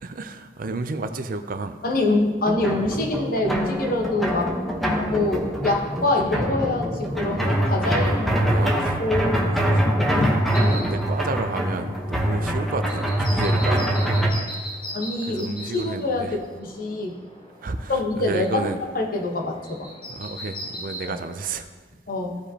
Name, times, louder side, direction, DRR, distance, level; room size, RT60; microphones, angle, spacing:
voice 1, 0.0-1.8 8.3-9.0 9.3-9.9 10.7-14.1 15.3-16.4 17.6-18.8 20.1-21.7, right 3 dB, 50° right, 9 dB, 0.5 m, -31 dB
voice 2, 1.8-4.5 5.1-9.6 9.8-10.4 12.4-12.5 14.9-17.2 17.9-19.9 21.1-21.2 22.1-22.4, left 2 dB, 55° left, 1 dB, 1.1 m, -25 dB
sound 1, 2.5-14.3, equal, ahead, 1.0 m, -24 dB
sound 2, 10.5-21.1, equal, 30° left, 2.2 m, -39 dB
15.0 x 5.0 x 2.9 m, 1.4 s
head